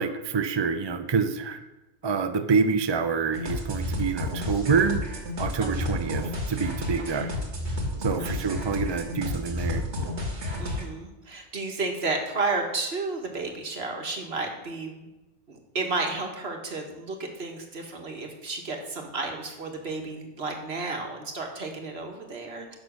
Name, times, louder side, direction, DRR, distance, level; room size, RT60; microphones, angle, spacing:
voice 1, 0.0-1.6 2.0-5.0 5.4-7.3 8.0-9.8, right 5 dB, 35° right, 8 dB, 0.4 m, -27 dB
sound 1, 3.3-10.9, left 1 dB, 75° right, 2.0 m, -31 dB
voice 2, 8.2-8.5 10.6-15.1 15.5-22.8, right 3 dB, 60° right, 2 dB, 1.7 m, -32 dB
10.5 x 6.3 x 6.3 m, 1.0 s
omnidirectional pair, 1.2 m